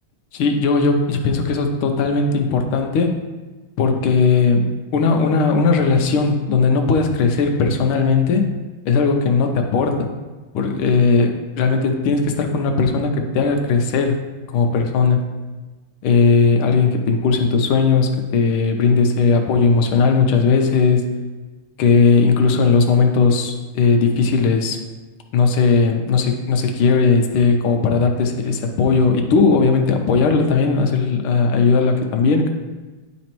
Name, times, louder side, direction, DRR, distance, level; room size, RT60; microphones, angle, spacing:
voice 1, 0.3-3.1 3.8-8.4 8.8-10.1 10.5-14.2 14.5-15.2 16.0-21.0 21.8-24.8 25.3-32.5, left 4 dB, 90° left, 4 dB, 1.5 m, -17 dB
10.0 x 4.2 x 3.0 m, 1.2 s
omnidirectional pair, 2.3 m